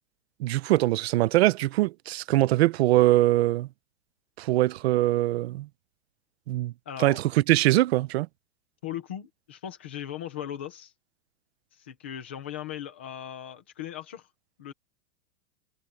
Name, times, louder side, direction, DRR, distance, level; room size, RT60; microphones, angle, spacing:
voice 1, 0.4-3.7 4.4-5.7 6.5-6.7 7.0-8.3, right 16 dB, 45° right, 0.6 m, -22 dB
voice 2, 6.9-7.2 8.8-10.9 11.8-14.3 14.6-14.7, left 10 dB, 10° left, 0.3 m, -38 dB
supercardioid pair, 170°, 44 cm